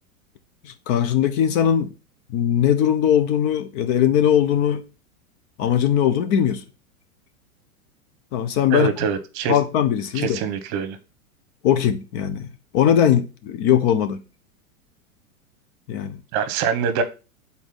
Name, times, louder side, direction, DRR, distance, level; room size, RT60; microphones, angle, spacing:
voice 1, 0.6-1.9 2.3-4.8 5.6-6.6 8.3-8.9 9.5-10.4 11.6-12.5 12.7-14.2 15.9-16.2, left 9 dB, 40° left, 0.7 m, -20 dB
voice 2, 8.7-9.6 10.1-11.0 16.3-17.0, right 6 dB, 45° right, 1.1 m, -24 dB
6.2 x 4.2 x 3.8 m
hypercardioid pair, 115°, 43 cm